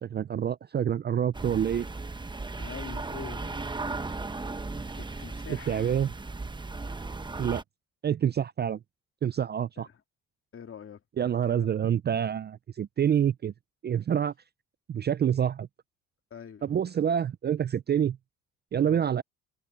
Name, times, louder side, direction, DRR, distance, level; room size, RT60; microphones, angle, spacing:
voice 1, 0.0-1.9 5.7-6.1 7.4-7.6 8.0-8.8 9.2-9.9 11.2-13.5 13.8-14.3 14.9-15.7 16.6-18.2 18.7-19.2, right 9 dB, 35° right, 0.4 m, -27 dB
sound 1, 1.3-7.6, right 3 dB, 15° right, 0.9 m, -36 dB
voice 2, 2.6-3.6 5.0-5.9 9.8-10.0 10.5-11.0 11.5-11.8 16.3-16.7 18.8-19.1, left 7 dB, 45° left, 2.3 m, -44 dB
cardioid pair, 90°, 30 cm